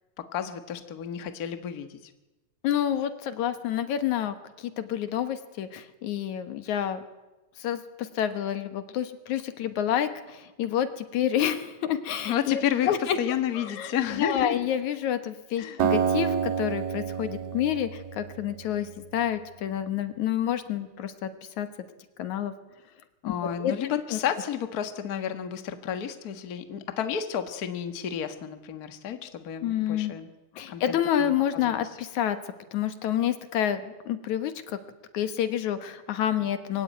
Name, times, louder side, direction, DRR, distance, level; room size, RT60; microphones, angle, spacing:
voice 1, 0.3-2.0 12.2-14.6 15.6-15.8 23.2-30.3 30.7-31.9, left 9 dB, 40° left, 8 dB, 1.5 m, -31 dB
voice 2, 2.6-7.0 7.6-12.6 12.9-13.2 13.6-21.3 21.6-21.7 22.2-22.5 23.3-23.4 23.6-23.7 24.1-24.2 29.6-30.1 30.6-32.4 32.7-34.8 35.1-36.8, left 10 dB, 80° left, 10 dB, 2.8 m, -28 dB
Acoustic guitar, 15.8-19.0, right 8 dB, 65° right, 2.2 m, -28 dB
24.0 x 16.0 x 9.3 m, 1.1 s
omnidirectional pair, 3.3 m